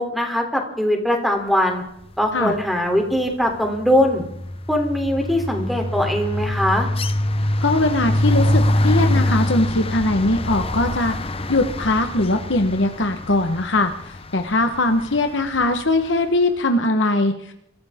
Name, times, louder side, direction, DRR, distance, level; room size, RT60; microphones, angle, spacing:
voice 1, 0.0-1.8 2.2-4.2 4.7-6.9, equal, ahead, 3 dB, 3.3 m, -21 dB
sound 1, 2.3-2.7 3.0-16.1, left 1 dB, 30° left, 0.9 m, -25 dB
voice 2, 7.6-11.1 11.5-17.5, left 2 dB, 70° left, 6 dB, 1.3 m, -21 dB
25.0 x 15.5 x 3.7 m, 0.77 s
head